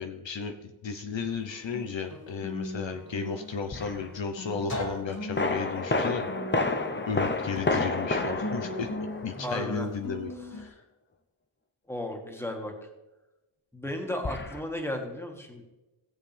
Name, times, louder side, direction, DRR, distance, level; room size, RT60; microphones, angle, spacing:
voice 1, 0.0-6.3 7.0-10.3 10.6-10.7, left 5 dB, 60° left, 5 dB, 0.8 m, -34 dB
Guitar, 1.2-10.7, left 1 dB, 45° left, 2.5 m, -39 dB
sound 1, 3.7-4.0 5.4-9.8 14.2-14.6, left 2 dB, 20° left, 0.7 m, -30 dB
voice 2, 9.4-9.9 10.6-10.7 11.9-12.7 13.7-15.6, left 1 dB, 5° left, 2 dB, 1.7 m, -34 dB
17.5 x 7.4 x 3.4 m, 1.0 s
wide cardioid pair, 105°, 50 cm